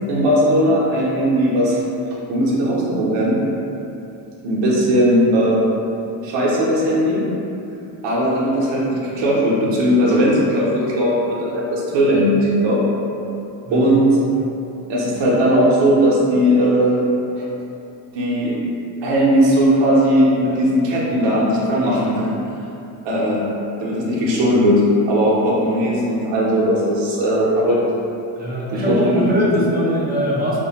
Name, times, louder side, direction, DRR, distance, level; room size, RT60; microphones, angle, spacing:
voice 1, 0.1-1.8 2.3-3.4 4.4-5.7 6.2-7.2 8.0-12.8 13.7-14.1 14.9-17.0 17.4-17.5 18.1-18.6 19.0-22.3 23.0-23.5 23.8-27.8 28.7-29.8, equal, 65° right, -6 dB, 0.7 m, -18 dB
voice 2, 28.3-30.6, equal, 20° right, -6 dB, 0.4 m, -21 dB
2.3 x 2.1 x 2.7 m, 2.8 s
supercardioid pair, 100°, 48 cm